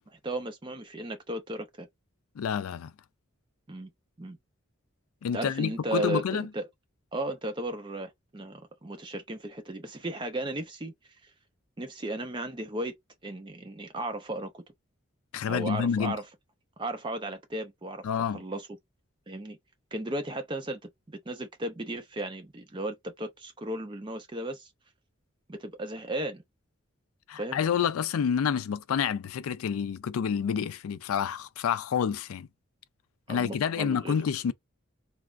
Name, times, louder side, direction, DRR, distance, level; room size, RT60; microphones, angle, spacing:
voice 1, 0.1-1.9 3.7-3.9 4.2-4.4 5.3-6.7 7.1-10.9 11.8-12.9 13.2-14.6 15.5-16.2 16.8-18.7 19.3-19.6 19.9-24.7 25.5-26.4 27.4-27.6 33.3-34.2, right 1 dB, 25° right, 0.5 m, -35 dB
voice 2, 2.4-2.9 5.2-6.5 15.3-16.2 18.0-18.4 27.3-32.5 33.3-34.5, left 7 dB, 90° left, 0.3 m, -28 dB
3.3 x 2.0 x 2.4 m
head